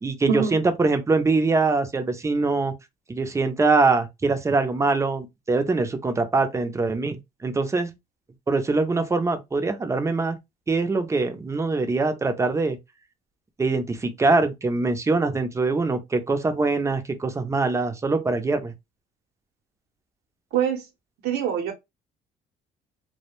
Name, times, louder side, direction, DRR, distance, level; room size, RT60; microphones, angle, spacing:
voice 1, 0.0-2.7 3.1-7.9 8.5-10.4 10.7-12.8 13.6-18.7, right 3 dB, 15° right, 0.5 m, -23 dB
voice 2, 20.5-20.8 21.2-21.7, right 8 dB, 70° right, 0.7 m, -24 dB
2.2 x 2.0 x 3.0 m
cardioid pair, 110°, 17 cm